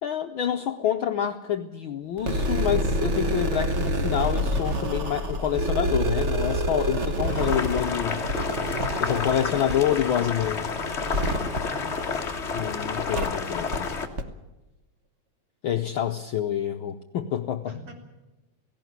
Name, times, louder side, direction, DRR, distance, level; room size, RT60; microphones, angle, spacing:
voice 1, 0.0-8.2 9.0-10.6 12.5-13.9 15.6-17.8, left 10 dB, 90° left, 5 dB, 1.1 m, -27 dB
sound 1, 2.2-12.6 13.1-13.3 13.7-13.8 14.2-14.3, right 1 dB, 65° right, 0.6 m, -28 dB
Boiling, 7.3-14.1, left 5 dB, 40° left, 1.0 m, -30 dB
voice 2, 8.9-11.9 17.7-17.9, right 1 dB, 50° right, 2 dB, 4.6 m, -42 dB
17.5 x 17.0 x 9.4 m, 1.0 s
omnidirectional pair, 3.4 m